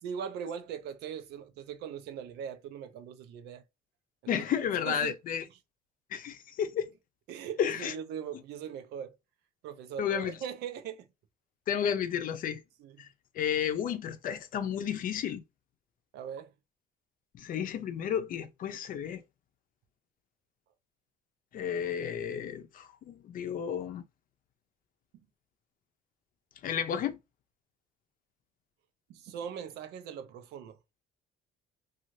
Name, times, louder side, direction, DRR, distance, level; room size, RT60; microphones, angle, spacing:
voice 1, 0.0-3.6 4.2-4.5 4.9-5.1 7.3-9.1 9.6-11.1 12.8-13.1 16.1-16.5 29.1-30.8, right 8 dB, 80° right, 0.6 m, -40 dB
voice 2, 4.3-5.4 6.1-6.9 7.6-7.9 10.0-10.3 11.7-12.6 13.0-13.1 13.4-15.4 17.3-19.2 21.5-24.0 26.6-27.2, left 8 dB, 55° left, 0.5 m, -32 dB
2.7 x 2.4 x 3.0 m
cardioid pair, 110°, 17 cm